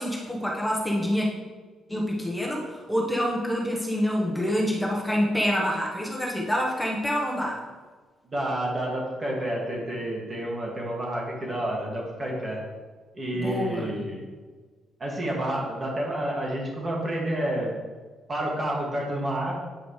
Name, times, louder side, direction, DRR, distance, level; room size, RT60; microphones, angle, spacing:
voice 1, 0.0-1.3 1.9-7.6 13.3-14.1, equal, 5° left, -2 dB, 1.3 m, -27 dB
voice 2, 8.3-12.6 13.1-14.2 15.0-17.7 18.3-19.5, right 1 dB, 30° right, -2 dB, 2.2 m, -29 dB
8.9 x 4.9 x 3.3 m, 1.4 s
cardioid pair, 90°, 0 cm